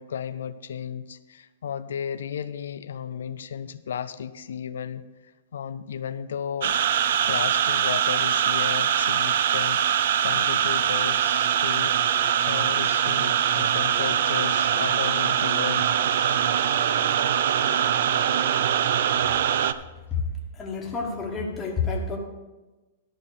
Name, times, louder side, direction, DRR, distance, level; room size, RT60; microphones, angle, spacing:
voice 1, 0.0-6.8 7.1-15.9, left 8 dB, 90° left, 12 dB, 0.5 m, -34 dB
sound 1, 6.6-19.7, right 9 dB, 60° right, 0.4 m, -23 dB
voice 2, 20.5-22.2, left 5 dB, 10° left, -1 dB, 1.5 m, -29 dB
11.5 x 5.5 x 6.7 m, 1.2 s
hypercardioid pair, 170°, 0 cm